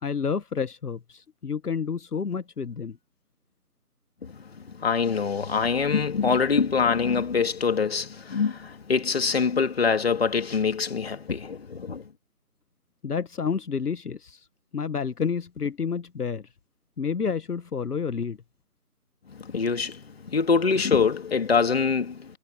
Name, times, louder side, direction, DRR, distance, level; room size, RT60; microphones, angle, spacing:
voice 1, 0.0-3.0 13.0-14.5 14.7-16.5 17.0-18.4, left 6 dB, 75° left, 1.2 m, -29 dB
voice 2, 4.8-12.1 19.3-22.4, left 5 dB, 40° left, 2.8 m, -24 dB
figure-of-eight pair, 165°, 46 cm